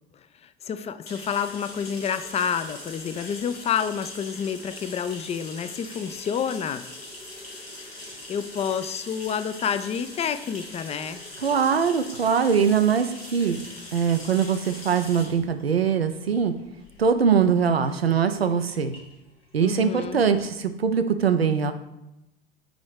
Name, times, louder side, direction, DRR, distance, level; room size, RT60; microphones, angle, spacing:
voice 1, 0.4-6.8 8.3-11.2 19.6-20.2, left 7 dB, 20° left, 11 dB, 0.5 m, -29 dB
sound 1, 1.1-20.5, left 2 dB, 85° left, 1.8 m, -42 dB
voice 2, 11.4-13.6 13.9-16.5 17.0-18.9 19.5-21.7, right 6 dB, 85° right, 8 dB, 0.6 m, -22 dB
9.0 x 3.1 x 5.0 m, 0.91 s
figure-of-eight pair, 75°, 30 cm